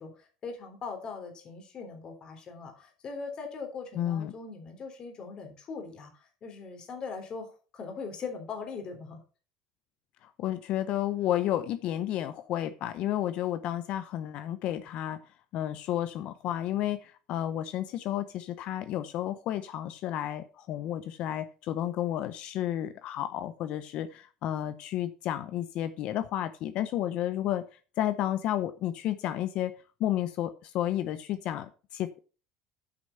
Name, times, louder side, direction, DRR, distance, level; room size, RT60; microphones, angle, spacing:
voice 1, 0.0-6.1 6.4-9.2, left 5 dB, 45° left, 4 dB, 3.3 m, -40 dB
voice 2, 3.9-4.3 10.2-15.2 15.5-27.6 28.0-29.7 30.0-32.2, left 12 dB, 65° left, 12 dB, 0.7 m, -31 dB
8.8 x 6.3 x 5.7 m, 0.37 s
supercardioid pair, 95°, 2 cm